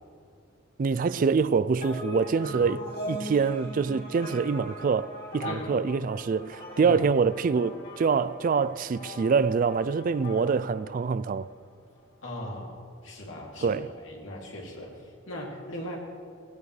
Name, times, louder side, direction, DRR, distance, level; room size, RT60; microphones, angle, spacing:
voice 1, 0.8-11.5 13.6-13.9, right 5 dB, 40° right, 0.3 m, -25 dB
sound 1, 1.8-11.6, left 1 dB, 50° left, 2.3 m, -40 dB
voice 2, 5.4-5.8 6.8-7.0 12.2-12.8 13.0-16.0, left 1 dB, 70° left, 2.7 m, -39 dB
16.0 x 16.0 x 3.3 m
head